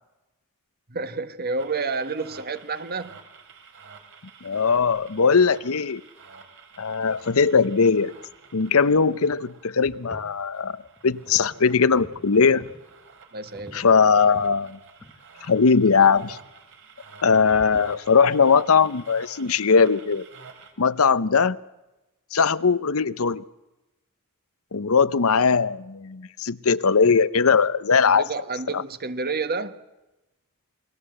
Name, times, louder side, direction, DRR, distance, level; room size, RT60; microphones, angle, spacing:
voice 1, 0.9-3.2 13.3-13.8 28.0-29.8, right 4 dB, 45° right, 1.4 m, -30 dB
sound 1, 1.6-20.7, right 5 dB, 60° right, 3.7 m, -50 dB
voice 2, 4.4-6.0 6.8-8.1 8.5-12.7 13.7-14.8 15.4-16.4 17.2-20.3 20.8-21.6 22.3-23.4 24.7-28.3 28.7-28.8, left 5 dB, 70° left, 0.8 m, -20 dB
sound 2, 7.2-7.3 7.8-9.1 9.6-10.3 10.7-11.5 11.8-12.8 13.4-14.6 15.0-15.2 15.5-15.6 16.1-16.5 17.4-17.8, equal, 5° right, 2.2 m, -46 dB
28.5 x 21.5 x 7.8 m
head